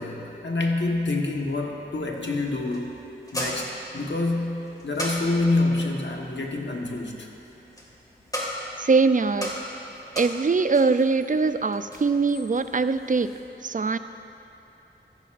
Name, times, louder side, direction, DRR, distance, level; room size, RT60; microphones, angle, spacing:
voice 1, 0.0-3.0 3.3-7.3, left 2 dB, 65° left, 0 dB, 1.3 m, -27 dB
sound 1, 2.1-13.4, equal, 20° left, 1.9 m, -38 dB
voice 2, 8.8-9.5 10.2-13.3 13.6-14.0, right 4 dB, 40° right, 11 dB, 0.4 m, -22 dB
14.5 x 14.5 x 2.5 m, 3.0 s
wide cardioid pair, 50°, 20 cm